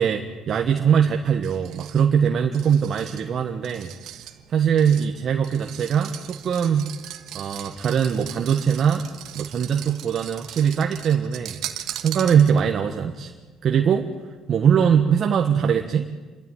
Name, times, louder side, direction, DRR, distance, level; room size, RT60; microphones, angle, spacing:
voice 1, 0.0-3.9 4.5-6.9 7.3-9.1 9.3-11.6 12.0-13.3 13.6-14.1 14.5-16.1, right 7 dB, 50° right, 4 dB, 1.4 m, -21 dB
sound 1, 1.4-12.8, right 12 dB, 75° right, 1.5 m, -39 dB
29.0 x 13.0 x 9.3 m, 1.4 s
cardioid pair, 115°, 0 cm